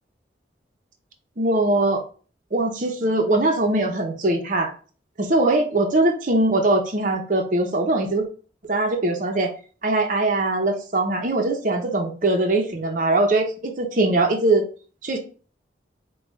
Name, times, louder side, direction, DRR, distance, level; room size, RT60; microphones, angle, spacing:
voice 1, 1.4-2.0 2.5-4.7 5.2-8.3 8.6-9.5 9.8-14.6 15.0-15.2, right 2 dB, 45° right, 3 dB, 0.7 m, -21 dB
4.9 x 2.3 x 3.2 m, 0.39 s
head